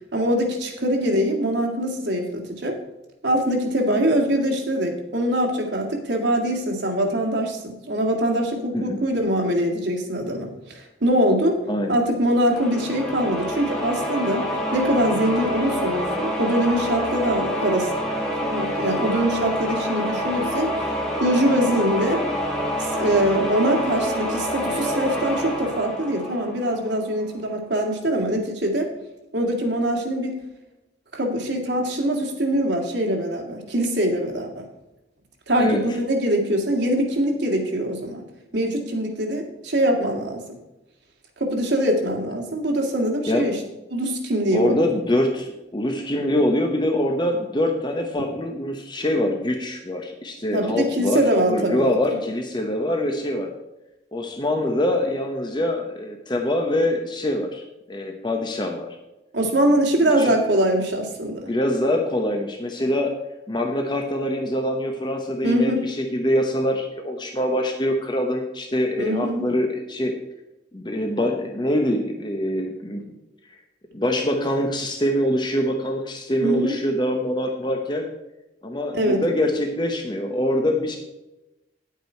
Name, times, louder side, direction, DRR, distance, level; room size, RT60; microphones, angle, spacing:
voice 1, 0.1-2.8 3.2-11.6 11.9-17.9 18.4-20.9 21.2-22.2 22.8-28.9 29.3-30.4 31.1-34.7 35.5-38.2 38.5-40.4 41.4-43.6 43.9-44.9 50.5-52.0 59.3-61.5 65.4-65.8 69.0-69.5 76.4-76.8 78.9-79.2, right 1 dB, 85° right, 1 dB, 2.0 m, -23 dB
voice 2, 11.7-12.0 35.6-35.8 43.3-43.5 44.5-53.5 54.1-57.6 57.9-58.9 60.0-60.4 61.5-63.1 63.5-70.1 70.7-73.0 73.9-78.1 78.6-81.0, left 1 dB, 25° left, 3 dB, 0.9 m, -24 dB
sound 1, 12.5-27.1, equal, 5° left, 2.0 m, -27 dB
9.9 x 8.3 x 4.5 m, 0.98 s
head